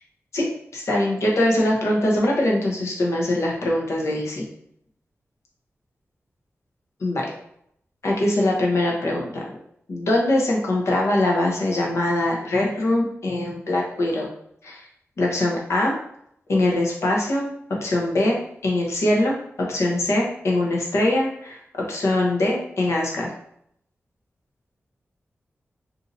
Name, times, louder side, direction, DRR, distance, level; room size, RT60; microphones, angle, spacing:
voice 1, 0.7-4.4 7.0-7.3 8.0-9.4 9.9-14.3 14.6-14.8 15.2-15.9 16.5-17.5 17.8-18.4 18.6-23.3, left 1 dB, 75° left, -2 dB, 0.9 m, -22 dB
2.7 x 2.6 x 3.9 m, 0.71 s
wide cardioid pair, 115°, 5 cm